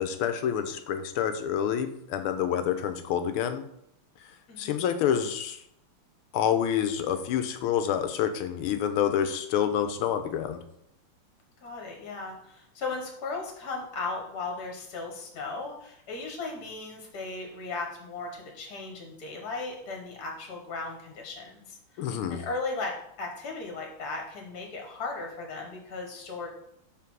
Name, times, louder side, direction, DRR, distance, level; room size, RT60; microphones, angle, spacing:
voice 1, 0.0-3.6 4.6-5.6 6.3-10.6 22.0-22.4, left 9 dB, 85° left, 9 dB, 1.6 m, -28 dB
voice 2, 4.5-4.9 11.6-26.5, left 3 dB, 50° left, 1 dB, 1.5 m, -36 dB
5.8 x 4.3 x 6.1 m, 0.74 s
omnidirectional pair, 2.3 m